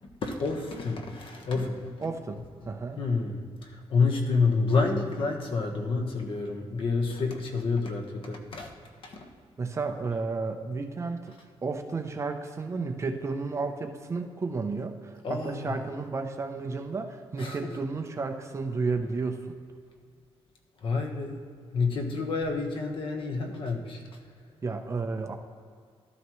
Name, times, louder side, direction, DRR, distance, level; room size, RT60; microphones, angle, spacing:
voice 1, 0.0-2.1 3.0-8.7 9.0-9.3 15.2-15.8 17.4-17.7 20.8-21.4 21.7-24.0, left 4 dB, 55° left, 3 dB, 1.3 m, -29 dB
voice 2, 2.0-2.4 2.7-3.0 9.6-11.3 11.6-19.5 24.6-25.3, right 4 dB, 25° right, 5 dB, 0.7 m, -32 dB
13.0 x 12.5 x 3.1 m, 2.2 s
wide cardioid pair, 170°, 10 cm